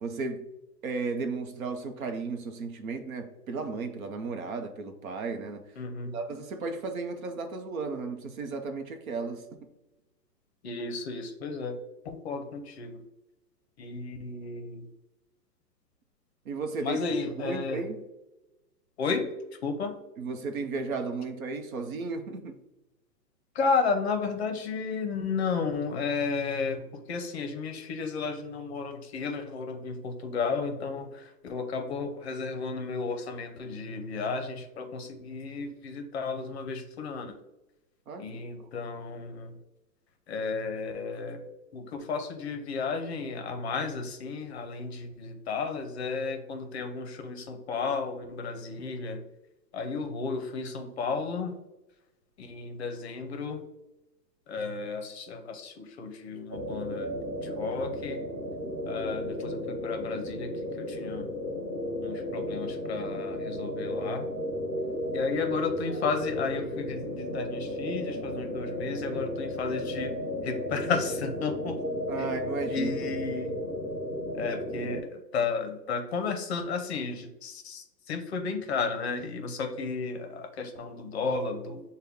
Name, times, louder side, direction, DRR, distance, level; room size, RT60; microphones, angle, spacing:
voice 1, 0.0-0.5 0.8-5.6 6.1-9.4 16.5-17.0 17.4-18.0 20.2-22.6 38.1-38.3 72.1-73.0, right 4 dB, 55° right, 0.7 m, -34 dB
voice 2, 5.8-6.1 10.6-11.8 12.0-13.0 13.8-14.8 16.8-17.9 19.0-19.3 19.6-19.9 23.5-37.4 38.2-39.5 40.3-41.4 41.7-49.2 49.7-51.5 52.4-53.6 54.5-57.1 57.4-58.2 58.9-60.5 60.8-61.3 62.0-64.2 65.1-70.1 70.4-71.8 72.2-72.3 72.7-73.6 74.3-81.8, left 4 dB, 40° left, 0.7 m, -33 dB
sound 1, 56.5-75.0, left 1 dB, 20° right, 1.5 m, -34 dB
6.5 x 2.2 x 3.5 m
hypercardioid pair, 145°, 49 cm